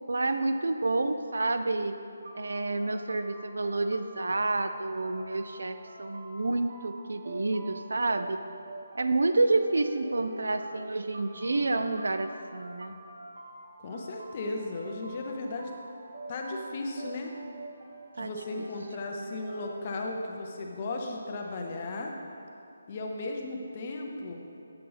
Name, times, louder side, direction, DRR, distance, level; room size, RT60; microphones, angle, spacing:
voice 1, 0.1-2.0 2.3-8.4 8.9-13.0 18.2-18.3, right 2 dB, 80° right, 8 dB, 0.3 m, -29 dB
sound 1, 2.2-20.0, right 2 dB, 55° right, 0.8 m, -46 dB
voice 2, 13.8-15.7 16.3-17.3 18.2-22.1 22.9-24.4, left 2 dB, 25° left, 2 dB, 0.4 m, -36 dB
7.6 x 2.9 x 5.4 m, 2.7 s
hypercardioid pair, 180°, 0 cm